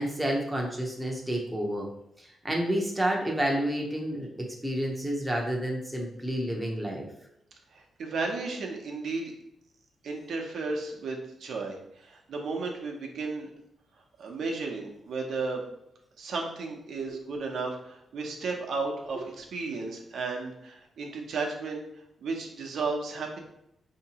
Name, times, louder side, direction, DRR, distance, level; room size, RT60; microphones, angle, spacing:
voice 1, 0.0-1.9 2.2-7.1, right 1 dB, 10° right, -1 dB, 0.7 m, -30 dB
voice 2, 7.7-9.3 10.0-13.5 14.2-15.6 16.2-21.8 22.2-23.4, right 3 dB, 75° right, 1 dB, 0.7 m, -34 dB
4.5 x 2.8 x 2.9 m, 0.80 s
cardioid pair, 115°, 0 cm